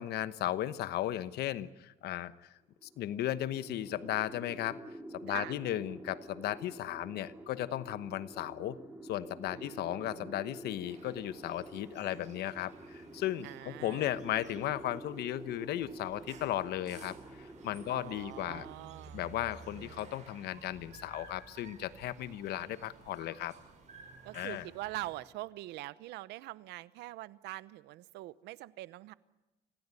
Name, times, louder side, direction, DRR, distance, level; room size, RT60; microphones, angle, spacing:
voice 1, 0.0-2.5 2.8-4.8 5.1-8.8 9.1-18.7 19.1-23.6 24.3-24.6, left 13 dB, 75° left, 15 dB, 1.0 m, -36 dB
sound 1, 2.8-18.8, right 1 dB, 10° right, 3.1 m, -49 dB
voice 2, 9.5-10.3 13.4-14.1 17.9-19.2 24.2-29.1, right 17 dB, 85° right, 18 dB, 0.8 m, -44 dB
sound 2, 10.8-25.2, right 4 dB, 45° right, 6.3 m, -55 dB
26.0 x 16.5 x 9.8 m, 1.1 s
cardioid pair, 110°, 17 cm